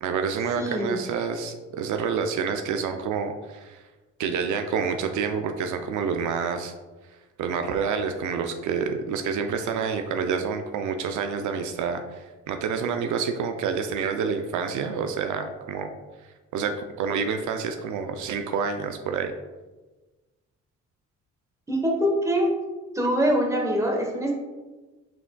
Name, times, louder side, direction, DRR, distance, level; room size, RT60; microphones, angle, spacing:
voice 1, 0.0-3.8 4.2-6.7 7.4-15.9 16.5-19.3, right 6 dB, 75° right, 6 dB, 0.5 m, -28 dB
voice 2, 0.6-1.0 21.7-22.5 22.9-24.3, equal, 10° right, -1 dB, 1.1 m, -24 dB
5.8 x 3.7 x 2.2 m, 1.2 s
cardioid pair, 90°, 30 cm